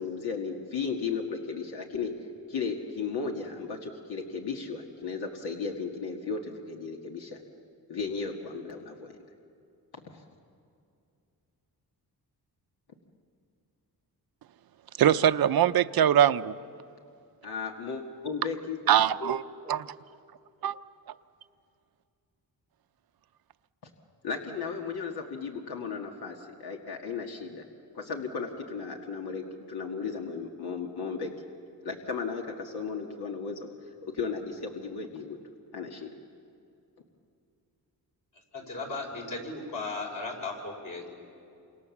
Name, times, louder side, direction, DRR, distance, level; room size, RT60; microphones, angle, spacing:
voice 1, 0.0-2.1 2.5-7.4 7.9-9.2 10.1-10.2 17.4-18.8 19.2-19.4 19.6-19.8 24.2-27.7 27.9-31.3 31.8-33.7 34.0-35.4 35.7-36.1, left 5 dB, 80° left, 1 dB, 2.0 m, -35 dB
voice 2, 15.0-16.5 18.9-19.4 19.7-19.9 20.6-20.8, right 10 dB, 70° right, 12 dB, 0.7 m, -22 dB
voice 3, 38.5-41.1, left 3 dB, 60° left, 0 dB, 5.9 m, -36 dB
28.5 x 26.5 x 7.3 m, 2.6 s
cardioid pair, 115°, 38 cm